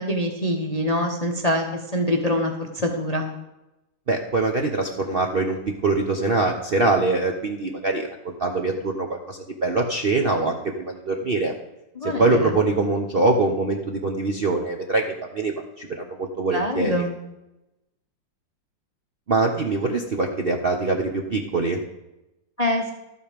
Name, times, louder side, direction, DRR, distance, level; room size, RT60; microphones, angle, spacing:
voice 1, 0.0-1.7 1.9-3.3 12.0-12.5 16.5-17.1 22.6-22.9, left 1 dB, 35° left, 3 dB, 0.7 m, -24 dB
voice 2, 4.1-11.5 12.0-17.0 19.3-21.8, right 3 dB, 50° right, 2 dB, 0.7 m, -23 dB
12.5 x 8.0 x 5.1 m, 0.94 s
omnidirectional pair, 2.0 m